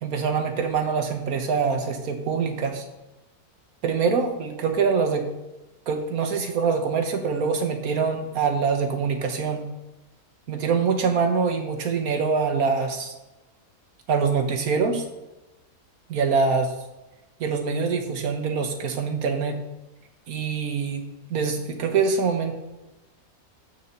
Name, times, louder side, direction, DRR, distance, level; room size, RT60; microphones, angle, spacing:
voice 1, 0.0-2.8 3.8-5.3 5.9-9.7 10.5-13.1 14.1-15.0 16.1-16.7 17.4-19.6 20.3-21.0 21.3-22.5, right 5 dB, 75° right, 5 dB, 1.5 m, -24 dB
6.8 x 4.7 x 6.7 m, 1.0 s
omnidirectional pair, 1.5 m